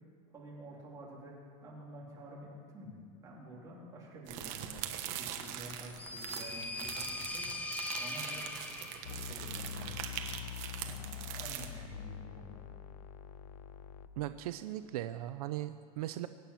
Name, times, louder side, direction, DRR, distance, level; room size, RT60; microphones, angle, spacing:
voice 1, 0.3-4.8 5.2-7.5 8.0-8.5 9.0-10.4 10.8-12.6, right 1 dB, 15° right, -5 dB, 3.6 m, -49 dB
sound 1, 4.3-11.7, right 10 dB, 40° right, 1.2 m, -42 dB
sound 2, 5.6-9.3, left 2 dB, 10° left, 0.8 m, -41 dB
sound 3, 9.0-14.1, left 9 dB, 75° left, 0.8 m, -45 dB
voice 2, 14.2-16.3, right 14 dB, 75° right, 11 dB, 0.6 m, -38 dB
23.5 x 9.2 x 5.9 m, 2.1 s
supercardioid pair, 165°, 19 cm